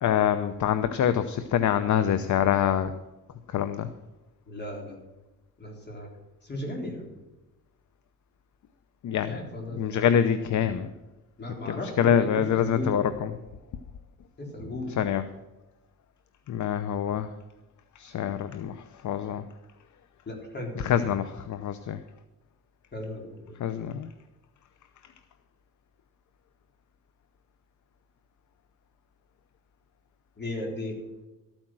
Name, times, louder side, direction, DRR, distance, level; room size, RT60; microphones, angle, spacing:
voice 1, 0.0-2.9 3.5-3.9 9.0-9.4 9.7-10.9 11.7-13.3 15.0-15.2 16.5-17.3 18.0-18.7 19.0-19.4 20.8-22.0 23.6-24.1, left 9 dB, 50° left, 12 dB, 0.7 m, -25 dB
voice 2, 4.5-5.0 5.6-6.1 6.4-7.1 9.3-10.0 11.4-13.0 14.4-15.0 20.3-20.9 22.9-23.6 30.4-31.0, left 1 dB, 30° left, 1 dB, 3.8 m, -36 dB
13.0 x 8.9 x 6.1 m, 1.1 s
cardioid pair, 110°, 37 cm